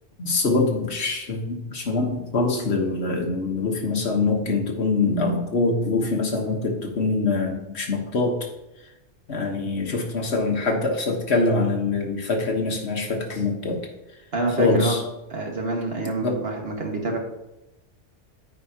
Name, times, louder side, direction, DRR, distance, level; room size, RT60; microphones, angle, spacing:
voice 1, 0.2-8.5 9.3-13.8 14.6-15.0 16.2-16.4, left 3 dB, 60° left, 1 dB, 1.4 m, -24 dB
voice 2, 14.3-15.0 15.3-17.2, right 2 dB, 55° right, 1 dB, 1.8 m, -27 dB
14.5 x 4.9 x 2.8 m, 0.92 s
omnidirectional pair, 1.3 m